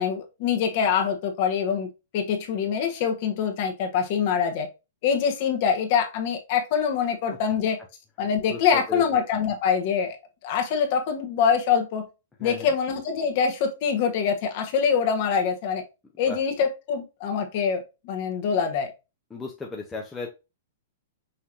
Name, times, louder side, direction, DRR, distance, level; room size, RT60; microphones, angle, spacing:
voice 1, 0.0-4.7 5.0-7.8 8.2-10.2 10.4-12.1 12.4-15.8 16.2-18.9, left 7 dB, 40° left, 1.2 m, -24 dB
voice 2, 8.5-9.0 12.4-12.7 16.3-16.4 19.3-20.3, left 3 dB, 5° left, 0.6 m, -35 dB
5.5 x 3.1 x 2.5 m
hypercardioid pair, 170°, 0 cm